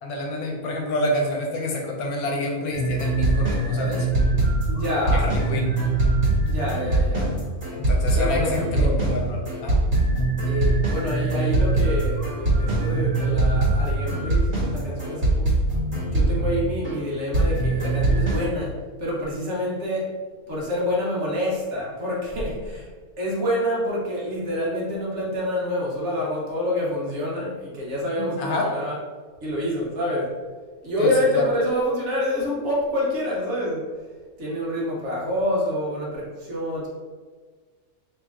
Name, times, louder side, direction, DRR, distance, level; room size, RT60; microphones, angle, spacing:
voice 1, 0.0-4.1 5.1-5.7 7.7-9.8 28.2-28.7 31.0-31.5, left 1 dB, 80° left, 0 dB, 1.2 m, -28 dB
sound 1, 2.7-17.0 17.3-18.5, right 2 dB, 35° right, 1.5 m, -22 dB
voice 2, 4.7-5.3 6.5-7.3 8.1-9.0 10.4-15.5 16.1-18.7 19.0-20.1 20.5-22.9 23.2-29.0 29.4-30.3 30.8-33.9 34.4-36.9, left 1 dB, 55° right, -4 dB, 1.2 m, -27 dB
3.4 x 3.1 x 3.6 m, 1.5 s
omnidirectional pair, 1.5 m